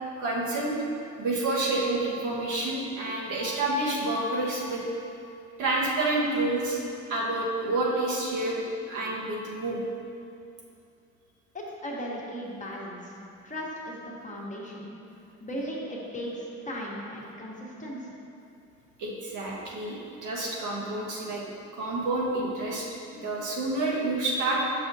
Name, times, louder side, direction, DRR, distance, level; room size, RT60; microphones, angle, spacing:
voice 1, 0.2-0.8 1.2-4.8 5.6-6.8 7.1-9.9 19.0-20.0 20.2-21.4 21.7-22.9 23.1-24.6, right 2 dB, 80° right, -5 dB, 1.3 m, -28 dB
voice 2, 11.5-13.2 13.4-14.9 15.4-18.1, equal, 25° left, -4 dB, 1.1 m, -37 dB
6.9 x 5.6 x 2.7 m, 2.6 s
cardioid pair, 90°, 30 cm